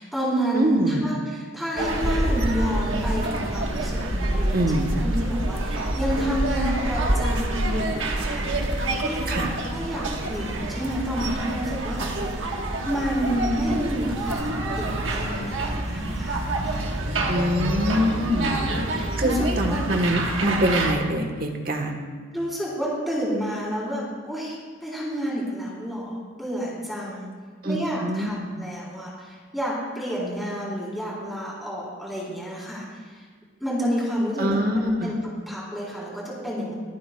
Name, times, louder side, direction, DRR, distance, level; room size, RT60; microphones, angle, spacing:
voice 1, 0.0-4.6 5.0-17.3 18.6-19.4 19.6-19.9 22.3-27.3 27.6-33.2 33.6-35.2 35.5-36.7, equal, ahead, -7 dB, 4.0 m, -30 dB
voice 2, 0.5-1.1 4.5-5.0 9.3-9.5 17.3-18.6 19.2-22.0 27.6-28.3 28.5-28.6 34.4-35.1, equal, 50° right, 3 dB, 1.3 m, -24 dB
sound 1, 1.8-20.9, right 1 dB, 85° right, 1.4 m, -27 dB
24.5 x 9.3 x 2.3 m, 1.5 s
head